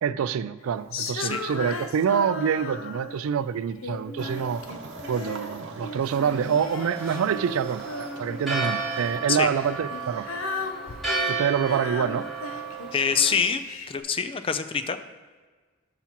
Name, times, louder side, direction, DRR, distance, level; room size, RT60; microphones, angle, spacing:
voice 1, 0.0-4.6 5.1-10.3 11.3-12.3, right 7 dB, 75° right, 0.3 m, -26 dB
Female singing, 0.9-3.3 3.8-5.5 5.8-8.7 9.4-14.0, left 3 dB, 75° left, 0.7 m, -36 dB
sound 1, 4.2-10.3, right 3 dB, 60° right, 0.9 m, -42 dB
Church bell, 6.8-13.4, right 4 dB, ahead, 2.6 m, -33 dB
voice 2, 12.9-13.6 13.9-15.0, left 6 dB, 25° left, 0.4 m, -25 dB
12.5 x 5.8 x 3.0 m
head